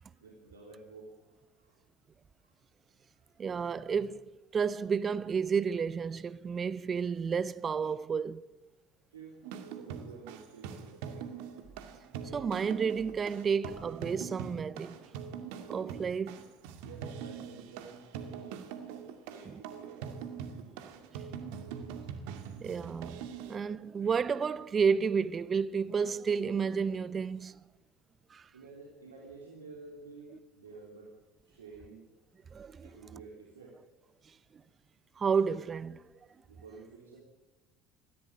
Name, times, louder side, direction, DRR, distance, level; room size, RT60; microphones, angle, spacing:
voice 1, 0.0-1.8 2.4-2.5 9.1-9.4 9.7-11.3 16.8-18.6 19.3-20.0 28.5-31.2 31.4-32.1 32.8-33.8 36.5-37.2, right 4 dB, 85° right, 3.5 m, -51 dB
voice 2, 3.4-4.2 4.5-8.4 12.3-15.1 15.7-16.5 19.5-19.6 22.6-27.6 28.3-28.5 32.5-32.9 34.5-34.6 35.2-36.0, right 6 dB, 35° right, 0.9 m, -31 dB
sound 1, 9.4-23.6, right 7 dB, 70° right, 2.3 m, -43 dB
22.0 x 15.0 x 9.9 m
hypercardioid pair, 65°, 0 cm